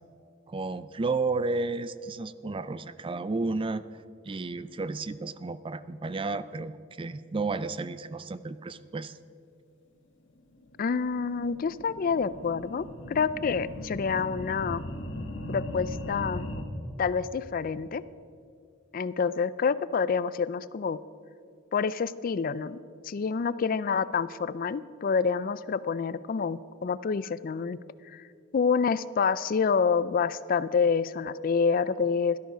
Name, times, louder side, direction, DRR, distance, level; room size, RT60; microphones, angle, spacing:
voice 1, 0.5-3.8 4.3-9.2, right 3 dB, 30° right, 15 dB, 0.4 m, -32 dB
sound 1, 10.5-16.6, left 1 dB, 75° left, 1.6 m, -39 dB
voice 2, 10.8-14.8 15.5-16.5 17.0-18.0 18.9-21.0 21.7-22.8 23.0-27.8 28.1-28.2 28.5-32.4, left 5 dB, 50° left, 17 dB, 0.4 m, -27 dB
17.0 x 12.5 x 5.1 m, 2.4 s
head